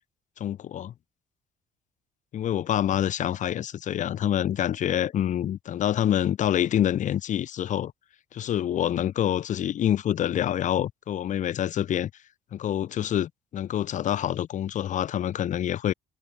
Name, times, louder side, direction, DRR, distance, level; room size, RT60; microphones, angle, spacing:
voice 1, 0.4-0.9 2.3-7.9 8.3-12.1 12.5-15.9, left 10 dB, 50° left, 0.6 m, -26 dB
cardioid pair, 110°, 17 cm